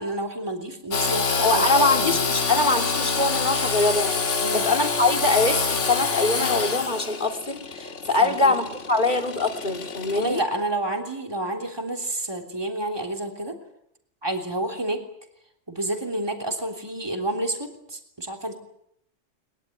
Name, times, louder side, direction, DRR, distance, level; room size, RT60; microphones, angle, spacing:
voice 1, 0.0-2.2 4.4-4.7 8.2-8.5 10.1-13.6 14.2-15.0 15.7-18.6, right 1 dB, 20° right, 3 dB, 3.3 m, -29 dB
Engine / Sawing, 0.9-10.4, left 4 dB, 80° left, 2.2 m, -26 dB
voice 2, 1.4-10.4, left 3 dB, 40° left, 4 dB, 3.1 m, -23 dB
22.5 x 22.0 x 9.5 m, 0.75 s
omnidirectional pair, 1.2 m